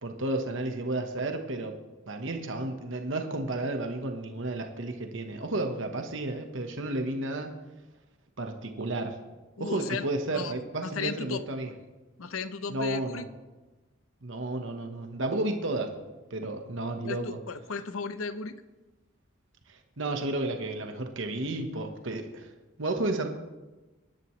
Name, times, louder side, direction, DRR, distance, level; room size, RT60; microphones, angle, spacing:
voice 1, 0.0-1.8 2.1-7.5 8.4-9.2 9.6-11.7 12.7-13.3 14.2-15.9 16.3-17.4 19.7-22.5 22.8-23.3, right 2 dB, 70° right, 5 dB, 1.2 m, -32 dB
voice 2, 9.6-11.4 12.2-13.3 17.0-18.6, left 5 dB, 85° left, 12 dB, 0.7 m, -35 dB
21.5 x 10.5 x 3.2 m, 1.1 s
head